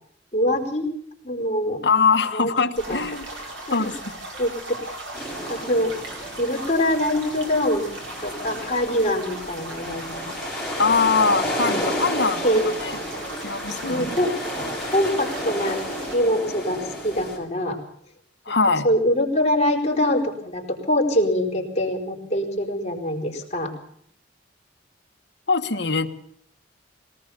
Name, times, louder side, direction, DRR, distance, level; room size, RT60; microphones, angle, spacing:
voice 1, 0.3-0.9 1.2-1.8 2.3-3.0 3.8-3.9 4.4-4.5 4.9-5.0 5.5-5.9 6.4-7.9 8.2-10.3 11.6-11.9 12.4-12.6 13.9-14.3 14.6-15.8 16.1-17.8 18.5-18.6 18.8-23.7, equal, 35° left, 0 dB, 4.6 m, -24 dB
voice 2, 1.8-3.2 3.7-4.1 10.8-12.4 12.8-13.0 13.4-14.2 18.5-18.9 25.5-26.1, left 4 dB, 60° left, 6 dB, 1.6 m, -22 dB
sound 1, 2.7-16.2, right 1 dB, 75° right, 5.3 m, -37 dB
sound 2, 5.1-17.4, left 1 dB, ahead, 7.1 m, -32 dB
22.0 x 18.5 x 7.1 m, 0.67 s
head